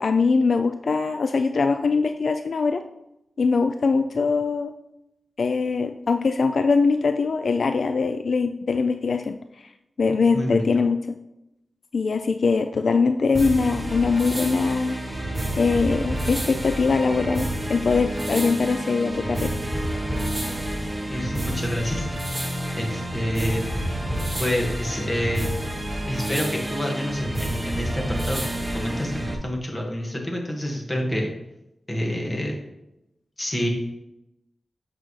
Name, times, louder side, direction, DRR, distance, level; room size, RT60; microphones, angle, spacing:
voice 1, 0.0-2.8 3.4-4.7 5.4-9.7 10.0-11.2 11.9-15.0 15.6-19.5, left 4 dB, 70° left, 8 dB, 0.3 m, -22 dB
voice 2, 10.3-10.8 21.1-22.2 22.7-23.6 24.4-25.5 26.1-28.4 28.7-31.3 31.9-32.5 33.4-33.7, equal, 25° left, -1 dB, 1.7 m, -28 dB
sound 1, 13.3-29.3, right 1 dB, 15° right, 1.1 m, -29 dB
sound 2, 20.4-21.0, equal, ahead, 1.9 m, -44 dB
8.0 x 5.8 x 3.2 m, 0.88 s
wide cardioid pair, 90°, 0 cm